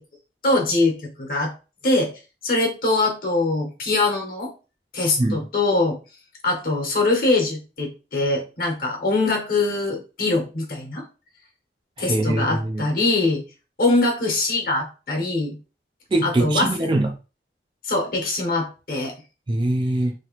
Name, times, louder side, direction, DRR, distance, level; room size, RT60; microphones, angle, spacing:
voice 1, 0.4-1.5 1.8-2.1 2.4-4.5 4.9-6.0 6.4-11.0 12.0-13.4 13.8-15.6 16.2-16.7 17.8-19.1, left 2 dB, 55° left, 1.1 m, -22 dB
voice 2, 12.0-12.9 16.1-17.2 19.5-20.1, right 1 dB, 25° right, 0.4 m, -22 dB
3.0 x 2.9 x 3.1 m
head